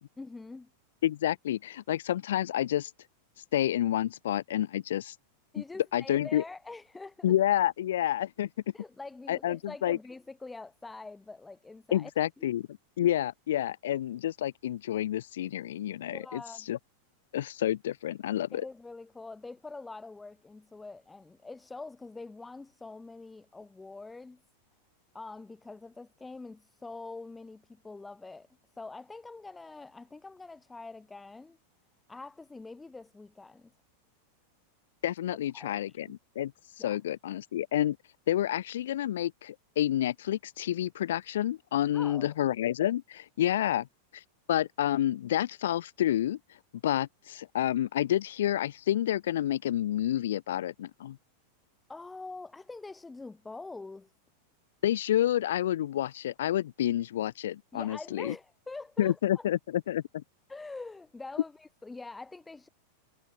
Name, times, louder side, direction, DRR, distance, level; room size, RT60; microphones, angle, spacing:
voice 1, 0.2-0.7 5.5-7.3 8.7-12.1 12.4-12.5 16.1-16.7 18.5-24.4 25.1-28.5 28.7-31.6 32.1-33.7 35.5-36.2 36.8-37.0 41.9-42.4 51.9-54.1 57.7-59.5 60.5-62.7, left 3 dB, 10° left, 3.4 m, -45 dB
voice 2, 1.0-2.9 3.5-5.2 5.9-6.4 7.2-8.5 9.3-10.0 11.9-12.7 13.0-16.4 16.7-16.8 17.3-18.6 35.0-36.5 36.8-38.0 38.3-43.9 44.1-44.2 44.5-46.4 46.8-51.2 54.8-58.3 59.0-60.2, left 12 dB, 60° left, 1.6 m, -29 dB
figure-of-eight pair, 90°, 0 cm